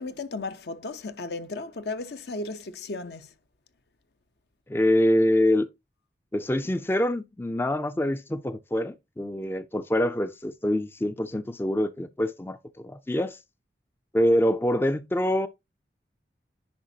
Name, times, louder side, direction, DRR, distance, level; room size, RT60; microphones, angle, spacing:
voice 1, 0.0-3.3, left 3 dB, 70° left, 0.7 m, -35 dB
voice 2, 4.7-5.7 6.3-13.4 14.1-15.5, left 1 dB, 15° left, 0.3 m, -25 dB
10.0 x 5.0 x 2.7 m
head